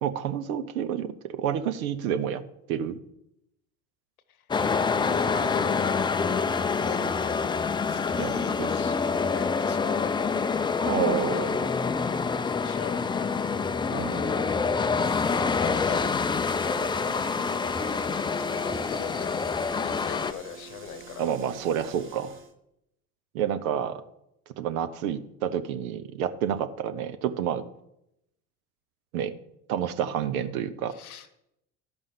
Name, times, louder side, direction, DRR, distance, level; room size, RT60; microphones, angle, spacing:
voice 1, 0.0-2.4 2.7-3.0 8.2-8.3 8.6-8.7 10.8-11.6 13.9-14.2 21.2-22.4 23.3-24.0 24.6-27.6 29.1-29.3 29.7-30.9, right 9 dB, 75° right, 11 dB, 0.9 m, -29 dB
sound 1, 4.5-20.3, left 5 dB, 10° left, 0.4 m, -26 dB
voice 2, 4.9-6.0 6.8-7.5 7.9-10.5 11.2-11.5 12.6-13.6 13.9-16.1 18.4-21.3 30.9-31.3, left 7 dB, 85° left, 12 dB, 1.0 m, -39 dB
sound 2, 16.4-22.5, right 4 dB, 30° right, 1.5 m, -47 dB
12.5 x 5.4 x 6.8 m, 0.83 s
hypercardioid pair, 70°, 42 cm